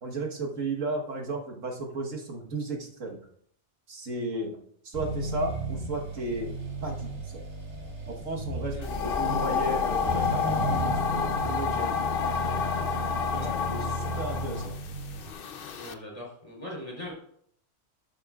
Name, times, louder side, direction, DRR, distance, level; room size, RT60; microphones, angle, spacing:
voice 1, 0.0-3.2 3.9-4.6 4.8-6.5 6.8-7.4 8.1-8.8 9.0-12.0 13.7-14.8, right 2 dB, 80° right, 0 dB, 1.7 m, -34 dB
Accelerating revving vroom, 4.9-15.3, right 1 dB, 65° right, 2.4 m, -34 dB
sound 1, 8.8-15.9, left 6 dB, 55° left, 0.8 m, -30 dB
voice 2, 15.8-17.1, left 1 dB, 25° left, -3 dB, 3.4 m, -40 dB
12.0 x 9.2 x 2.4 m, 0.64 s
omnidirectional pair, 1.3 m